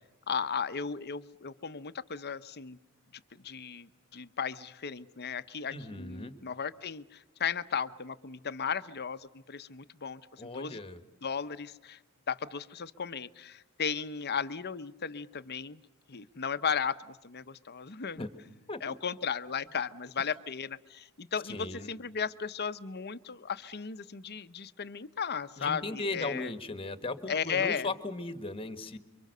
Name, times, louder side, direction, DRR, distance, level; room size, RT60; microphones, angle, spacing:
voice 1, 0.3-2.8 3.4-10.8 11.2-12.0 12.3-15.8 16.1-18.2 18.8-26.5 27.3-27.9, left 6 dB, 50° left, 13 dB, 0.9 m, -35 dB
voice 2, 5.7-6.3 10.4-11.0 18.2-18.3 18.7-18.8 21.5-21.9 25.6-29.0, left 2 dB, 25° left, 10 dB, 1.5 m, -37 dB
28.0 x 24.5 x 6.7 m, 0.99 s
head